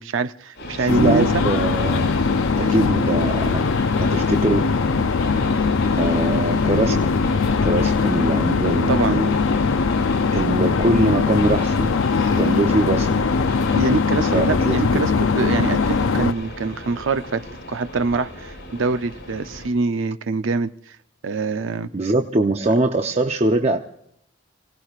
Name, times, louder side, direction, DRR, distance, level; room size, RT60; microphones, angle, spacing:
voice 1, 0.0-1.4 2.6-2.9 8.9-9.2 13.7-17.4 17.7-21.0 21.2-21.9, right 4 dB, 75° right, 0.6 m, -24 dB
Train, 0.5-19.7, left 1 dB, 55° left, 5.8 m, -34 dB
voice 2, 0.8-2.0 2.6-3.7 4.0-4.7 5.9-7.1 7.7-9.3 10.3-11.9 12.4-13.2 14.3-15.1 21.9-23.8, right 2 dB, 30° right, 0.7 m, -22 dB
sound 1, 0.9-16.3, left 4 dB, 75° left, 0.5 m, -20 dB
29.0 x 18.0 x 2.4 m
head